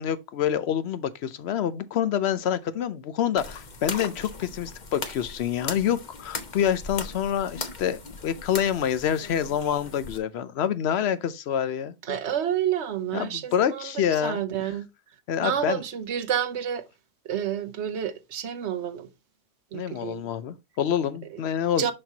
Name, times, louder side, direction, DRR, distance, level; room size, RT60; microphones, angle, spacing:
voice 1, 0.0-12.2 13.1-14.4 15.3-15.8 19.7-21.9, left 9 dB, 70° left, 0.8 m, -27 dB
sound 1, 3.4-10.2, left 4 dB, 45° left, 1.0 m, -38 dB
voice 2, 12.0-14.9 15.4-16.9 17.2-19.1 19.7-20.2 21.3-21.4 21.8-21.9, right 9 dB, 80° right, 1.1 m, -29 dB
6.5 x 6.0 x 2.7 m
omnidirectional pair, 1.1 m